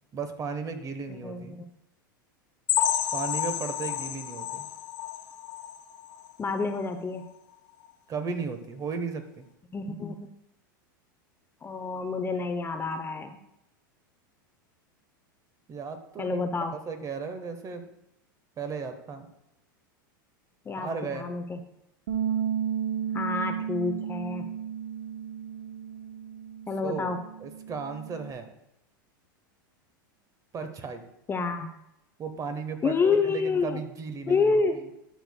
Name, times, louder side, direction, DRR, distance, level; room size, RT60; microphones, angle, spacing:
voice 1, 0.1-1.6 3.1-4.7 8.1-9.4 15.7-16.4 16.9-17.9 18.6-19.3 20.8-21.3 26.8-27.1 27.4-28.5 30.5-31.0 32.2-34.9, right 5 dB, 30° right, 8 dB, 1.0 m, -35 dB
voice 2, 1.1-1.7 6.4-7.2 9.7-10.2 11.6-13.3 16.2-16.7 20.7-21.6 23.1-24.5 26.7-27.2 31.3-31.7 32.8-33.8 34.3-34.8, left 4 dB, 20° left, 7 dB, 0.6 m, -28 dB
sound 1, 2.7-6.3 6.7-6.9 7.2-7.3 7.8-7.9, left 11 dB, 55° left, 0.9 m, -30 dB
Bass guitar, 22.1-28.3, right 8 dB, 70° right, 0.7 m, -33 dB
11.5 x 6.4 x 2.2 m, 0.85 s
hypercardioid pair, 100°, 11 cm